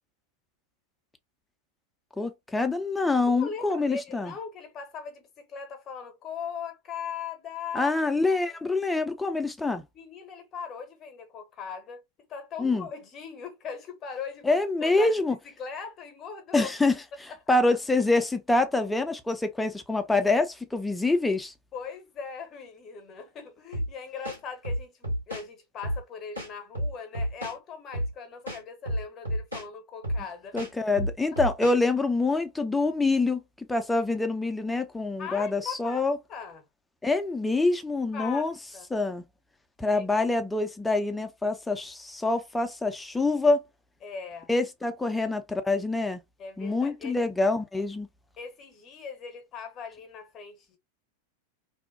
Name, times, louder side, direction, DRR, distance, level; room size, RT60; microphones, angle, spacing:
voice 1, 2.2-4.3 7.7-9.8 12.6-12.9 14.4-15.4 16.5-16.9 17.5-21.5 30.5-36.2 37.0-38.5 38.9-39.2 39.8-43.6 44.5-46.2 46.6-48.1, left 3 dB, 5° left, 0.4 m, -26 dB
voice 2, 3.3-7.9 9.9-12.0 12.3-16.7 17.5-17.6 21.7-30.6 35.2-36.6 38.1-38.9 39.9-40.0 44.0-44.5 46.4-47.2 48.4-50.8, left 6 dB, 30° left, 0.8 m, -39 dB
sound 1, 23.7-23.9 24.2-25.5 25.8-26.0 26.4-27.6 27.9-28.1 28.5-29.7 30.0-30.2 30.6-31.8, equal, 85° right, 1.4 m, -30 dB
2.7 x 2.1 x 2.6 m
figure-of-eight pair, 90°, 0 cm